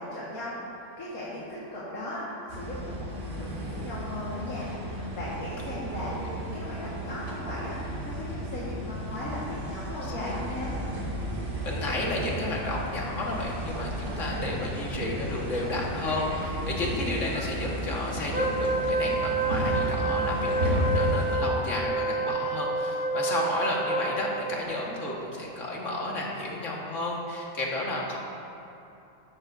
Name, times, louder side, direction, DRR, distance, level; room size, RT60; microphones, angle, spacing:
voice 1, 0.0-10.8, left 1 dB, 75° left, -9 dB, 2.2 m, -37 dB
sound 1, 2.5-21.4, equal, 55° right, 2.0 m, -33 dB
voice 2, 11.6-28.2, left 1 dB, 60° left, -3 dB, 2.0 m, -32 dB
Wind instrument woodwind instrument, 18.3-24.6, right 3 dB, 10° right, 0.7 m, -28 dB
13.5 x 13.0 x 2.7 m, 2.8 s
omnidirectional pair, 1.5 m